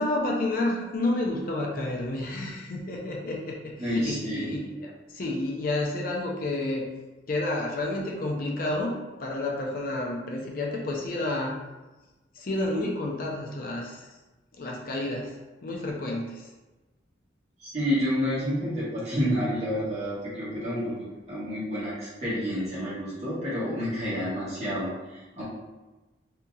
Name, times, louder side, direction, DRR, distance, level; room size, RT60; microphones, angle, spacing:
voice 1, 0.0-6.9 7.3-11.6 12.3-14.1 14.6-16.5, left 2 dB, 50° left, -1 dB, 0.5 m, -30 dB
voice 2, 3.8-4.5 17.6-20.9 21.3-25.4, equal, 35° right, -9 dB, 1.3 m, -29 dB
3.9 x 2.8 x 2.3 m, 1.1 s
head